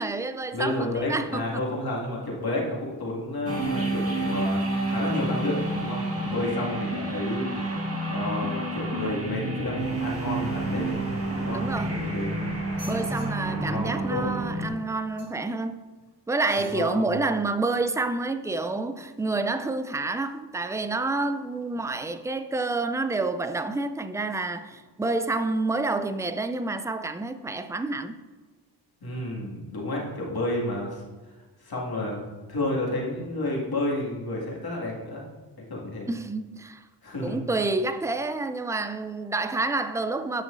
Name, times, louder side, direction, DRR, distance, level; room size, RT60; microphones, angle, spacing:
voice 1, 0.0-1.6 11.5-12.1 12.8-15.8 16.3-28.2 36.1-36.8 37.2-40.4, right 3 dB, 5° right, 0.4 m, -28 dB
voice 2, 0.5-7.8 8.1-11.6 11.9-12.4 13.4-14.2 16.6-17.0 29.0-31.0 31.6-32.2 32.5-35.2 35.6-36.1 37.0-37.4, left 1 dB, 55° left, 2.2 m, -31 dB
sound 1, 3.5-14.7, right 2 dB, 30° right, 1.6 m, -29 dB
sound 2, 11.5-12.2 12.7-13.3 15.2-15.5 16.4-16.8 17.5-17.6, right 1 dB, 85° right, 1.7 m, -49 dB
9.8 x 6.1 x 2.6 m
cardioid pair, 50°, 43 cm